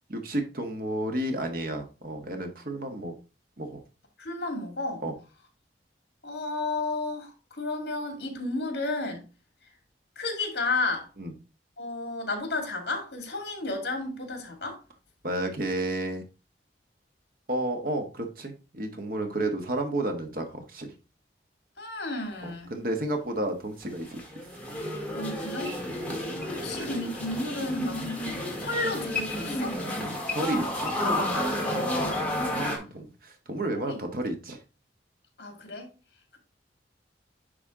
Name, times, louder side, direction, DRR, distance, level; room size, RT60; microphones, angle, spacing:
voice 1, 0.2-3.1 3.6-3.8 5.0-5.1 11.2-11.3 15.2-16.2 17.5-20.9 22.4-24.2 25.9-26.2 28.0-28.1 29.9-30.9 32.6-34.6, right 1 dB, 55° right, 1.4 m, -31 dB
voice 2, 4.2-5.0 6.2-9.2 10.2-11.1 11.8-14.8 21.8-22.7 25.1-25.8 26.5-28.1 28.6-29.8 31.6-32.3 33.7-34.0 35.4-35.9, left 2 dB, 65° left, 2.1 m, -32 dB
sound 1, 23.8-32.8, left 1 dB, 10° left, 1.7 m, -31 dB
10.0 x 3.4 x 3.7 m
head